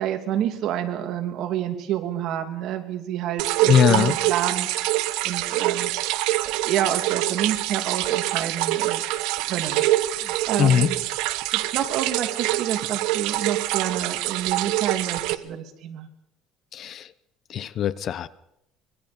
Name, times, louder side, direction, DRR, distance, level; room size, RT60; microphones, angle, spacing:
voice 1, 0.0-5.0 5.2-5.9 6.4-9.0 9.5-11.0 11.5-16.1, right 10 dB, 60° right, 5 dB, 2.9 m, -29 dB
sound 1, 3.4-15.3, right 16 dB, 85° right, 1.1 m, -25 dB
voice 2, 3.7-4.2 10.6-10.9 16.7-17.1 17.5-18.3, left 9 dB, 45° left, 17 dB, 0.8 m, -20 dB
25.0 x 22.5 x 5.3 m, 0.80 s
cardioid pair, 140°, 0 cm